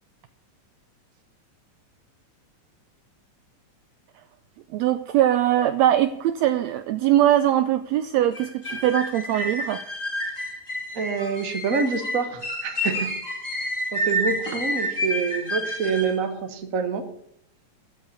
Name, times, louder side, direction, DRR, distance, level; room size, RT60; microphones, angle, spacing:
voice 1, 4.7-9.8, right 12 dB, 80° right, 11 dB, 1.6 m, -21 dB
sound 1, 8.3-16.2, equal, 15° left, 1.7 m, -29 dB
voice 2, 10.9-13.1 13.9-17.1, right 5 dB, 50° right, 7 dB, 1.0 m, -27 dB
14.0 x 5.4 x 8.4 m, 0.75 s
omnidirectional pair, 3.5 m